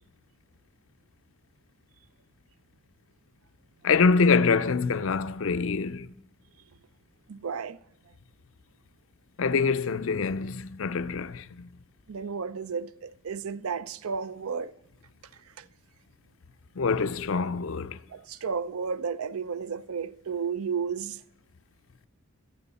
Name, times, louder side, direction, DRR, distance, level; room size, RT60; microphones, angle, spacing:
voice 1, 3.8-6.1 9.4-11.7 16.8-18.0, left 4 dB, 65° left, 0.5 m, -25 dB
voice 2, 7.3-7.8 12.1-14.7 15.6-15.7 18.1-21.2, right 6 dB, 80° right, 0.5 m, -33 dB
25.5 x 8.9 x 4.2 m
head